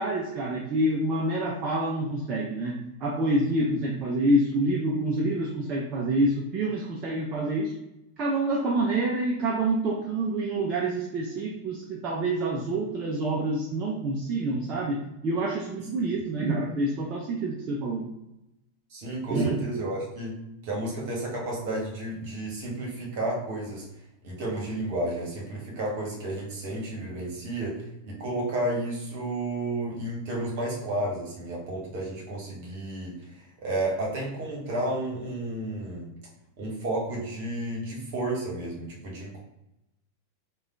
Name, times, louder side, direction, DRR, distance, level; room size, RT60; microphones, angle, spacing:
voice 1, 0.0-7.7 8.2-18.1 19.3-19.6, right 1 dB, 35° right, -1 dB, 0.4 m, -27 dB
voice 2, 18.9-20.3 20.6-23.8 24.2-33.2 33.6-36.1 36.6-39.4, right 1 dB, 50° right, -2 dB, 1.0 m, -32 dB
3.4 x 2.2 x 2.4 m, 0.88 s
figure-of-eight pair, 90°, 0 cm